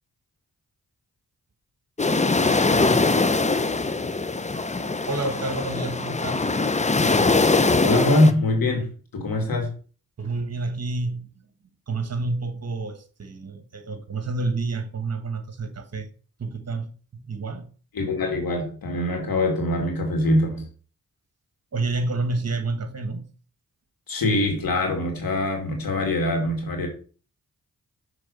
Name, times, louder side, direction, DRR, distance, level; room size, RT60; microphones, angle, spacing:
sound 1, 2.0-8.3, left 3 dB, 20° left, 0.7 m, -22 dB
voice 1, 5.1-6.5 10.2-11.3 11.9-16.1 16.4-17.6 21.7-23.3, right 3 dB, 45° right, 1.5 m, -29 dB
voice 2, 7.8-9.7 17.9-20.7 24.1-26.9, left 1 dB, 75° left, 2.6 m, -23 dB
6.7 x 3.9 x 5.6 m
cardioid pair, 45°, 35 cm